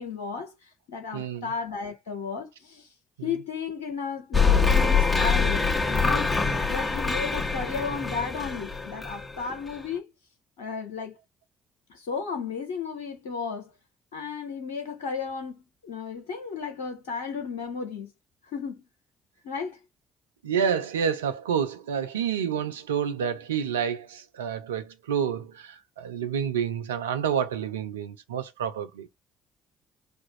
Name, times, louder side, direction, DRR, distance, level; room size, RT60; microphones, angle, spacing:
voice 1, 0.0-2.9 3.2-6.3 6.7-10.1 10.6-11.2 11.9-13.7 14.1-18.1 18.4-18.8 19.4-19.8, left 5 dB, 85° left, 0.7 m, -34 dB
voice 2, 1.1-1.5 3.2-3.3 20.4-29.1, right 8 dB, 90° right, 0.5 m, -29 dB
sound 1, 4.3-9.8, left 5 dB, 20° left, 1.4 m, -24 dB
4.5 x 2.4 x 4.4 m
hypercardioid pair, 50°, 0 cm